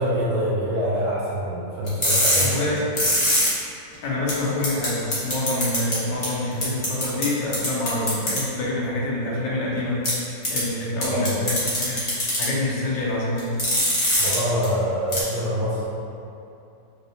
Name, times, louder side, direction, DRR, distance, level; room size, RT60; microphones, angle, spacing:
voice 1, 0.0-2.6 11.0-11.3 14.2-15.9, equal, 70° right, -7 dB, 1.0 m, -25 dB
sound 1, 1.9-3.5 3.9-4.0 4.3-4.4 4.6-4.9 5.1-5.9 6.2-6.3 6.6-7.2 7.5-8.4 10.0-10.1 10.4-10.6 11.0-12.4 13.4-14.4 14.6-14.7 15.1-15.2, left 1 dB, 40° left, 0.5 m, -21 dB
voice 2, 2.4-2.9 4.0-12.0 12.4-13.6, left 2 dB, 80° left, -5 dB, 1.4 m, -26 dB
4.6 x 2.0 x 2.7 m, 2.7 s
omnidirectional pair, 2.0 m